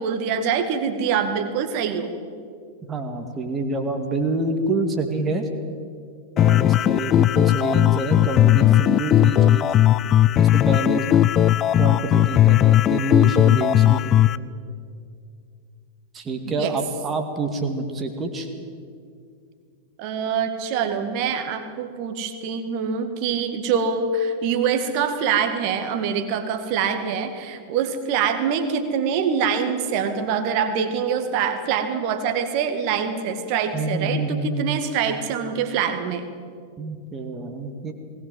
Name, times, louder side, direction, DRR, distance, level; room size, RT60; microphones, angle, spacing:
voice 1, 0.0-2.1 16.4-16.8 20.0-36.3, right 6 dB, 45° right, 8 dB, 2.1 m, -24 dB
voice 2, 2.8-5.5 6.4-9.7 10.4-11.1 11.8-14.0 16.1-18.5 33.7-34.8 36.8-37.9, right 2 dB, 20° right, 5 dB, 2.3 m, -27 dB
sound 1, 6.4-14.4, left 12 dB, 30° left, 0.5 m, -17 dB
20.0 x 18.5 x 7.9 m, 2.2 s
figure-of-eight pair, 90°, 0 cm